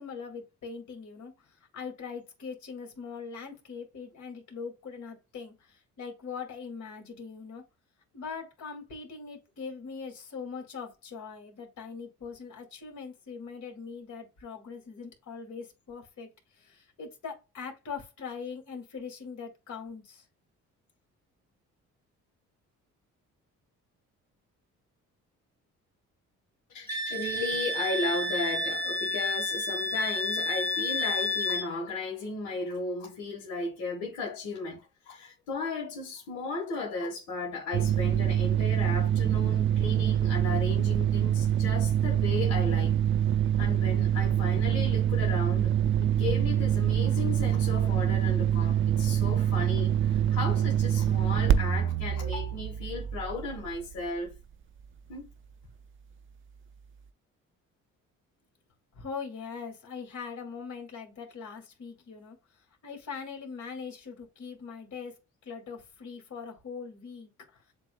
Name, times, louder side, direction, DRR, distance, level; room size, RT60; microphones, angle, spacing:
voice 1, 0.0-7.6 8.1-16.3 16.5-20.2 58.9-62.4 62.8-67.3, left 5 dB, 70° left, 2.3 m, -41 dB
voice 2, 26.7-43.0 43.6-45.7 46.0-54.3 55.1-55.3, left 3 dB, 90° left, 1.5 m, -35 dB
Wind instrument woodwind instrument, 26.9-31.7, left 1 dB, 10° left, 0.9 m, -31 dB
sound 1, 37.7-54.1, right 10 dB, 45° right, 0.4 m, -25 dB
7.5 x 2.7 x 2.3 m
cardioid pair, 90°, 30 cm